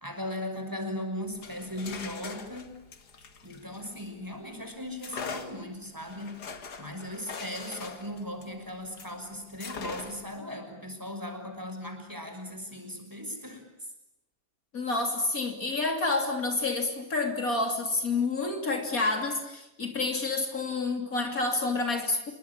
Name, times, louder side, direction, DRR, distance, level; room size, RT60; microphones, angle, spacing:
voice 1, 0.0-2.8 3.4-6.4 6.8-13.6, left 1 dB, 10° right, 4 dB, 6.0 m, -38 dB
sound 1, 1.3-4.4 5.0-9.2 9.6-10.4, left 5 dB, 80° left, 2.6 m, -42 dB
voice 2, 14.7-22.3, left 3 dB, 60° left, 4 dB, 3.7 m, -29 dB
28.5 x 23.0 x 8.7 m, 0.91 s
omnidirectional pair, 1.7 m